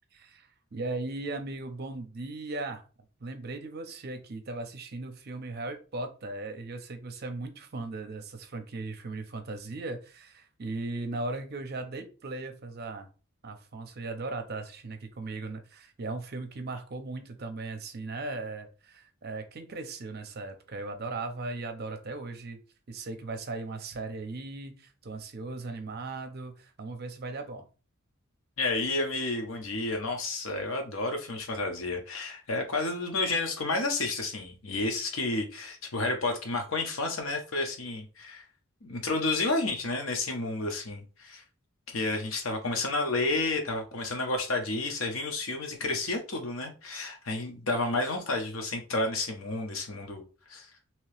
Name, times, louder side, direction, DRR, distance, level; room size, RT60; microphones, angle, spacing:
voice 1, 0.1-2.8 3.2-13.1 13.4-22.6 22.9-27.7, right 3 dB, 50° right, 7 dB, 0.6 m, -38 dB
voice 2, 28.6-38.4 38.8-41.4 41.9-50.2 50.5-50.7, left 2 dB, 70° left, 4 dB, 0.8 m, -31 dB
2.9 x 2.8 x 3.2 m, 0.35 s
head